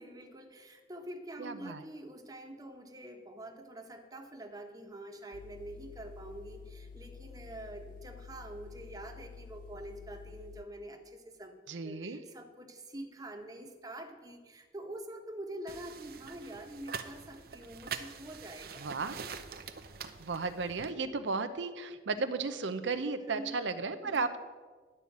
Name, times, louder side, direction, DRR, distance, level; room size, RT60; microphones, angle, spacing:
voice 1, 0.0-19.3 23.3-23.6 24.0-24.3, right 1 dB, 20° right, 4 dB, 1.2 m, -46 dB
voice 2, 1.4-1.8 11.7-12.2 18.8-19.3 20.2-24.4, right 4 dB, 90° right, 9 dB, 0.7 m, -34 dB
sound 1, 5.3-10.7, left 5 dB, 45° left, 0.4 m, -50 dB
sound 2, 15.7-20.9, right 6 dB, 55° right, 0.7 m, -44 dB
11.0 x 5.6 x 8.5 m, 1.4 s
head